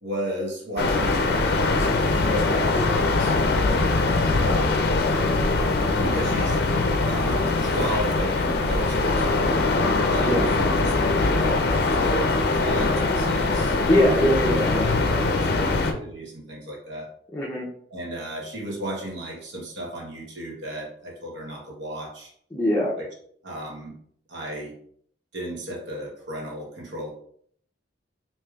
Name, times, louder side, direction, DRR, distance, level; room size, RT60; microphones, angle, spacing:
voice 1, 0.0-3.8 4.4-4.9 5.9-6.6 7.1-9.5 10.1-11.6 11.9-14.1 14.9-17.1 17.9-22.3 23.0-23.1 23.4-23.9 24.3-24.7 25.3-27.1, equal, 70° right, -2 dB, 1.1 m, -34 dB
sound 1, 0.8-15.9, left 3 dB, 60° left, 0.5 m, -22 dB
voice 2, 10.2-11.0 13.9-15.7 17.3-17.7 22.5-22.9, left 1 dB, 10° left, -6 dB, 0.6 m, -24 dB
4.7 x 2.9 x 2.4 m, 0.63 s
head